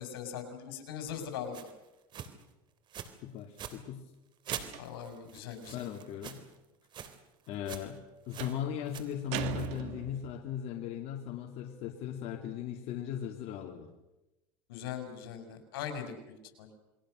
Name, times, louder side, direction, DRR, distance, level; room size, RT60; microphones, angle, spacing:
voice 1, 0.0-1.6 4.8-5.8 14.7-16.1 16.6-16.7, left 8 dB, 90° left, 6 dB, 5.9 m, -40 dB
sound 1, 1.5-1.7 2.1-2.4 2.9-3.2 3.4-3.8 4.4-6.6 6.8-7.2 7.4-8.0 8.3-8.6 8.9-9.8, right 9 dB, 40° right, 3.3 m, -44 dB
voice 2, 3.2-4.0 5.7-6.4 7.5-8.0 8.3-13.9, left 9 dB, 55° left, 2 dB, 2.8 m, -38 dB
sound 2, 4.5-5.1 8.4-8.7 9.3-10.4, right 11 dB, 65° right, 2.3 m, -39 dB
29.0 x 22.0 x 6.5 m, 1.0 s
supercardioid pair, 125°, 12 cm